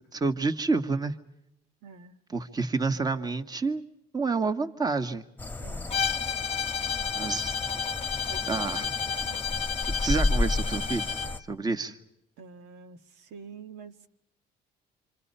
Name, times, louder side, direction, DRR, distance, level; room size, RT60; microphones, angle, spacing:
voice 1, 0.1-1.1 2.3-3.8 4.1-5.3 7.1-7.6 8.5-9.0 9.8-11.1 11.5-12.0, right 4 dB, 25° right, 6 dB, 1.8 m, -29 dB
voice 2, 1.8-2.2 5.6-6.0 8.3-8.7 9.1-9.4 12.4-14.1, right 5 dB, 80° right, 6 dB, 1.8 m, -47 dB
sound 1, 5.4-11.4, left 2 dB, 10° left, 1.4 m, -32 dB
Bowed string instrument, 5.9-11.4, left 6 dB, 35° left, 0.9 m, -31 dB
27.5 x 27.0 x 5.7 m, 0.80 s
cardioid pair, 110°, 17 cm